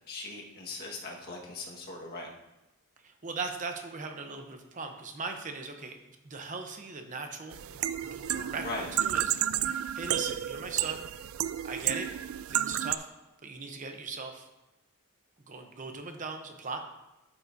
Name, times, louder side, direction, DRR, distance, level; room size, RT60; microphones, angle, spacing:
voice 1, 0.1-2.3 8.6-8.9, left 2 dB, 50° left, -2 dB, 1.6 m, -39 dB
voice 2, 3.0-6.0 6.2-7.8 8.1-8.6 9.0-11.1 11.6-12.1 12.5-13.1 13.4-14.5 15.5-16.8, right 4 dB, 35° right, 5 dB, 0.8 m, -39 dB
sound 1, 7.5-13.0, right 11 dB, 75° right, 0.3 m, -31 dB
12.0 x 7.1 x 2.7 m, 0.98 s
head